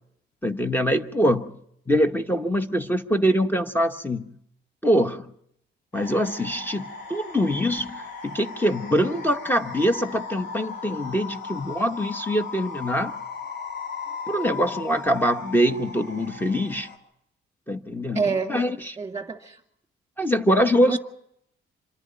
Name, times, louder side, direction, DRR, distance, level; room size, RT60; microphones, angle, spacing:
voice 1, 0.4-1.5 1.9-4.3 4.8-5.3 5.9-13.1 14.3-16.9 17.7-18.2 18.5-19.0 20.2-21.0, equal, 10° left, 8 dB, 1.0 m, -24 dB
sound 1, 5.9-17.0, left 5 dB, 65° left, 3.8 m, -37 dB
voice 2, 18.1-18.5 19.0-19.6 20.8-21.0, right 5 dB, 15° right, 5 dB, 2.6 m, -27 dB
26.5 x 11.0 x 9.2 m, 0.74 s
cardioid pair, 90°, 20 cm